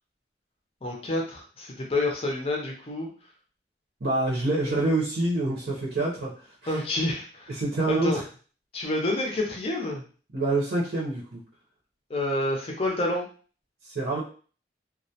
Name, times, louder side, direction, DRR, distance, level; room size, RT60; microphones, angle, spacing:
voice 1, 0.8-3.1 4.6-4.8 6.7-7.6 7.9-8.2 8.7-10.0 12.1-13.2, left 2 dB, 30° left, 0 dB, 0.5 m, -28 dB
voice 2, 4.0-6.3 6.6-6.8 7.5-8.2 10.3-11.4 13.9-14.2, right 2 dB, 65° right, -5 dB, 0.7 m, -26 dB
2.2 x 2.1 x 2.7 m, 0.40 s
head